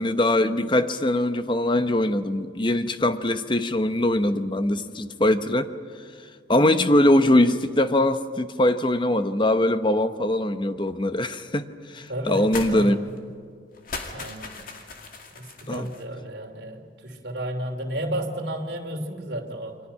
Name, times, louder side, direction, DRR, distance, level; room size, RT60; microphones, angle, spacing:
voice 1, 0.0-5.7 6.5-13.0 15.7-15.9, left 1 dB, 25° left, 10 dB, 0.9 m, -22 dB
voice 2, 12.1-13.0 14.1-14.6 15.3-19.8, right 1 dB, 65° right, 2 dB, 3.0 m, -32 dB
sound 1, 12.5-12.8 13.1-13.2 13.7-16.0, left 4 dB, 50° left, 2.4 m, -37 dB
29.0 x 24.0 x 5.7 m, 2.2 s
head